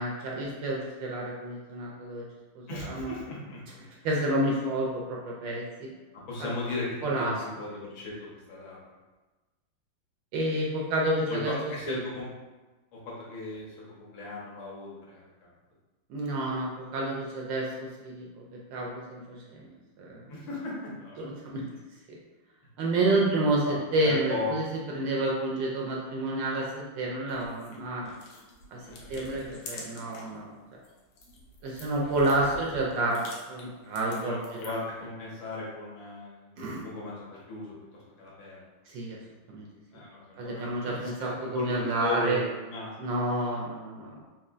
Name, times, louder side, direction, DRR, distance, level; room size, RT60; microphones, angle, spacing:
voice 1, 0.0-2.2 2.6-3.1 4.0-5.9 6.4-6.5 7.0-7.3 10.3-11.5 11.9-12.0 16.1-18.4 18.7-19.7 20.0-20.3 21.2-21.6 22.1-22.2 22.8-24.7 24.9-28.1 28.7-28.8 29.1-30.5 31.6-33.2 33.5-34.7 36.6-36.9 38.9-39.2 39.5-39.7 40.4-42.4 43.0-44.2, right 1 dB, 75° right, -2 dB, 1.2 m, -29 dB
voice 2, 2.7-3.6 6.1-6.9 7.2-8.9 11.3-12.3 12.9-15.5 20.3-21.5 23.2-23.3 23.7-24.6 28.8-29.1 32.4-32.5 33.9-36.5 36.8-38.6 39.9-42.9, left 2 dB, 70° left, -5 dB, 1.7 m, -37 dB
sound 1, 27.3-30.4 30.7-34.9, left 2 dB, 85° left, 1.6 m, -47 dB
4.2 x 2.8 x 2.4 m, 1.2 s
omnidirectional pair, 2.3 m